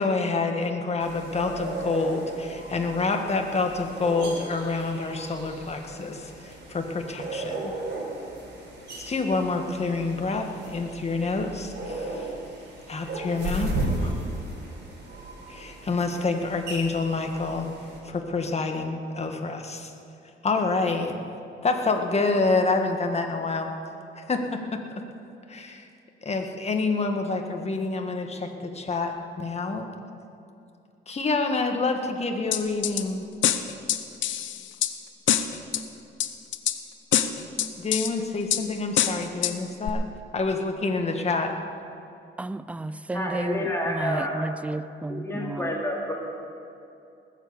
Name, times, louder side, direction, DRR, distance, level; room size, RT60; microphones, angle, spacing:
voice 1, 0.0-7.7 9.0-12.3 12.9-13.7 14.0-14.1 15.5-17.7 18.0-19.9 20.4-21.2 21.6-23.7 24.2-24.8 25.5-25.8 26.2-29.9 31.1-33.3 37.8-40.1 40.3-41.5, left 3 dB, 35° left, 4 dB, 1.7 m, -27 dB
sound 1, 1.0-18.0, right 2 dB, 60° right, 4.4 m, -36 dB
sound 2, 32.5-33.0 33.4-34.9 35.3-35.8 36.2-36.8 37.1-38.1 38.5-38.6 39.0-39.5 39.9-40.0, left 11 dB, 70° left, 0.8 m, -24 dB
voice 2, 42.4-45.7, right 2 dB, 5° right, 15 dB, 0.4 m, -32 dB
voice 3, 43.1-44.4 45.1-46.1, left 1 dB, 15° left, -3 dB, 3.5 m, -29 dB
20.0 x 7.5 x 7.0 m, 2.7 s
cardioid pair, 90°, 20 cm